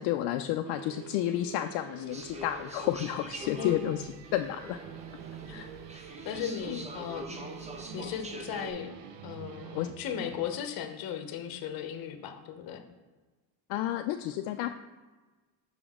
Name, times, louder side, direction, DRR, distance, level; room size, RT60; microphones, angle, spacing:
voice 1, 0.0-4.0 4.3-4.8 5.5-6.0 6.7-6.8 9.7-9.9 13.7-14.7, left 12 dB, 80° left, 6 dB, 0.5 m, -31 dB
sound 1, 0.6-10.5, right 8 dB, 85° right, 0.7 m, -47 dB
sound 2, 2.1-8.7, right 2 dB, 15° right, 0.6 m, -44 dB
voice 2, 6.2-7.4 7.9-8.9 9.2-12.8, left 8 dB, 60° left, 7 dB, 0.9 m, -37 dB
6.0 x 5.1 x 3.6 m, 1.3 s
cardioid pair, 115°, 40 cm